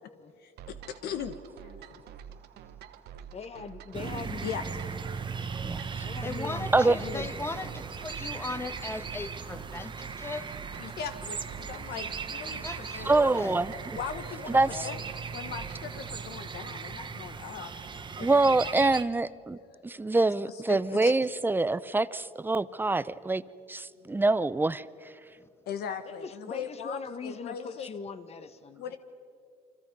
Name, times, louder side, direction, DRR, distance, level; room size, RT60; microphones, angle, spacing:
voice 1, 0.4-1.4 1.6-1.9 4.4-4.6 10.8-13.5 13.9-14.6 14.8-15.0 15.3-19.0 19.7-20.2 20.4-21.1 24.0-24.2 25.7-27.9 28.8-29.0, left 7 dB, 70° left, 9 dB, 1.3 m, -39 dB
sound 1, 0.6-16.5, right 9 dB, 75° right, 1.1 m, -48 dB
voice 2, 3.3-4.4 6.0-7.3 13.0-13.6 14.7-15.0 26.1-28.8, left 5 dB, 40° left, 11 dB, 1.3 m, -41 dB
sound 2, 3.9-19.0, right 5 dB, 25° right, 1.1 m, -38 dB
voice 3, 6.2-10.5 12.6-13.6, left 2 dB, 15° left, 10 dB, 1.3 m, -38 dB
voice 4, 13.1-13.7 14.5-14.8 18.2-23.4 23.7-24.9, right 2 dB, 10° right, 17 dB, 0.5 m, -25 dB
29.0 x 25.0 x 5.4 m, 2.4 s
cardioid pair, 110°, 17 cm